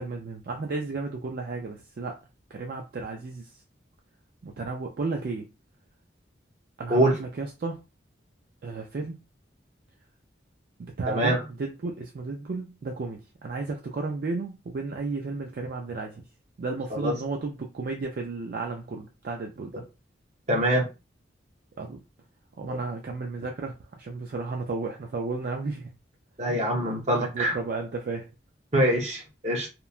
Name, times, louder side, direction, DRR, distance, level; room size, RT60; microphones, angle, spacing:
voice 1, 0.0-2.2 2.5-3.5 4.4-5.5 6.8-7.8 8.6-9.1 11.0-16.2 16.6-19.8 21.8-22.0 22.6-23.7 24.0-25.8 26.8-28.3, right 3 dB, 50° right, 0.4 m, -33 dB
voice 2, 11.1-11.4 16.9-17.1 20.5-20.9 22.7-22.8 26.4-27.5 28.7-29.7, right 1 dB, 35° right, 0.8 m, -24 dB
3.0 x 2.2 x 2.4 m
head